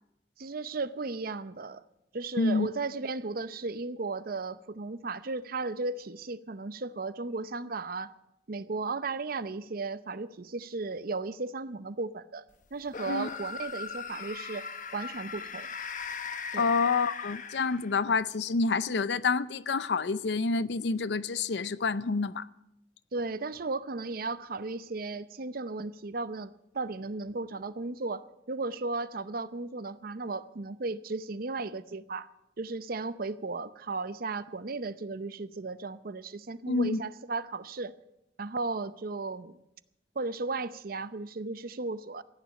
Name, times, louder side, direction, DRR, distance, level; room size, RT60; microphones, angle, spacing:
voice 1, 0.4-1.8 2.1-8.1 8.5-12.4 12.7-14.7 14.9-15.7 16.5-16.7 23.1-32.3 32.6-37.9 38.4-39.6 40.2-42.2, right 3 dB, 55° right, 0.7 m, -35 dB
voice 2, 2.4-2.7 13.1-13.3 16.6-22.5 36.7-37.0, left 4 dB, 75° left, 0.6 m, -28 dB
sound 1, 12.9-18.1, left 5 dB, 45° left, 1.0 m, -39 dB
15.5 x 10.0 x 9.0 m
head